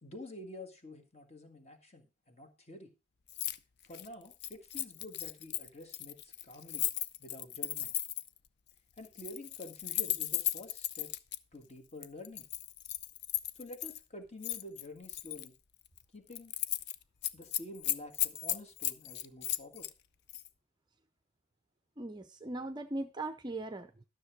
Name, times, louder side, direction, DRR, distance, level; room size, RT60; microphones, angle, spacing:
voice 1, 0.0-2.9 3.8-6.9 7.2-7.9 9.0-11.1 11.5-12.5 13.5-15.5 16.1-16.5 17.3-19.9, left 1 dB, 30° left, 6 dB, 1.7 m, -49 dB
Keys jangling, 3.3-3.6 3.8-8.4 9.0-11.4 12.0-14.0 14.4-15.5 15.9-16.0 16.3-16.9 17.2-19.9 20.3-20.5, left 13 dB, 50° left, 0.5 m, -36 dB
voice 2, 22.0-24.0, right 2 dB, 20° right, 8 dB, 0.6 m, -39 dB
12.5 x 6.6 x 4.6 m, 0.28 s
head